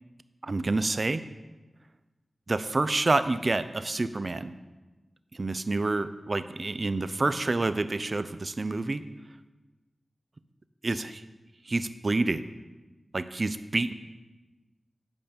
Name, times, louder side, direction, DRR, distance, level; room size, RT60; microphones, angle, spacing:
voice 1, 0.4-1.2 2.5-4.5 5.4-9.0 10.8-11.2 11.7-12.4 13.1-13.9, right 2 dB, 55° right, 12 dB, 0.6 m, -28 dB
10.5 x 5.3 x 6.8 m, 1.1 s
cardioid pair, 45°, 0 cm